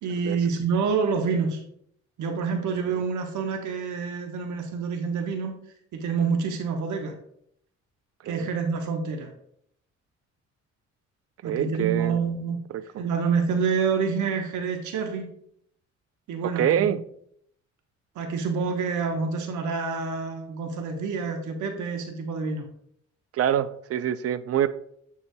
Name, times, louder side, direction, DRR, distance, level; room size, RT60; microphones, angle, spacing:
voice 1, 0.0-1.6 2.2-5.5 5.9-7.1 8.2-9.3 11.4-15.3 16.3-16.9 18.1-22.6, right 5 dB, 75° right, 4 dB, 1.1 m, -27 dB
voice 2, 11.4-12.1 12.7-12.8 16.6-17.0 23.3-24.7, right 10 dB, 55° right, 14 dB, 0.4 m, -25 dB
7.0 x 6.6 x 2.2 m, 0.68 s
cardioid pair, 90°, 30 cm